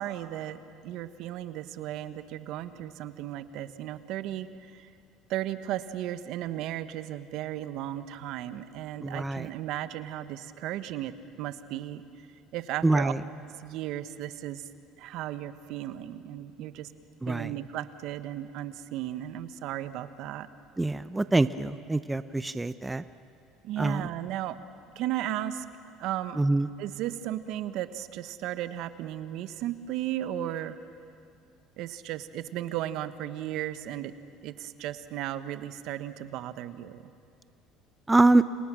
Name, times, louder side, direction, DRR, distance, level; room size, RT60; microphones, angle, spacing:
voice 1, 0.0-4.5 4.7-4.9 5.3-12.0 12.5-13.1 13.6-14.7 15.0-16.9 17.3-20.5 23.6-24.6 24.9-25.6 26.0-26.4 26.8-30.8 31.8-34.1 34.4-37.1, right 12 dB, 65° right, 12 dB, 1.2 m, -35 dB
voice 2, 9.0-9.5 12.8-13.2 17.2-17.5 20.8-23.0 23.8-24.1 26.3-26.7 38.1-38.4, right 2 dB, 10° right, 13 dB, 0.6 m, -24 dB
29.5 x 28.5 x 6.3 m, 2.3 s
supercardioid pair, 110°, 0 cm